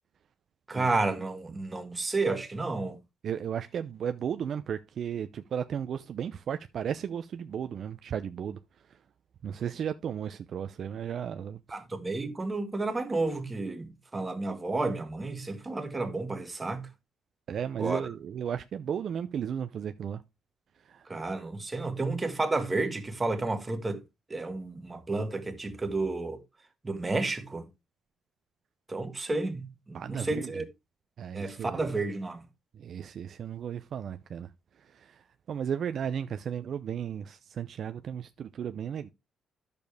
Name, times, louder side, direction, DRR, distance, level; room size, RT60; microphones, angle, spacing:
voice 1, 0.7-3.0 11.7-16.9 17.8-18.0 21.1-24.0 24.3-26.4 26.8-27.7 28.9-30.6 31.3-32.5, right 3 dB, 20° right, 1.5 m, -31 dB
voice 2, 3.2-8.6 9.4-11.6 17.5-20.2 20.9-21.1 29.9-30.5 31.2-31.9 32.7-34.5 34.9-35.2 35.5-39.1, right 8 dB, 60° right, 0.5 m, -34 dB
10.5 x 6.8 x 3.4 m
cardioid pair, 90°, 0 cm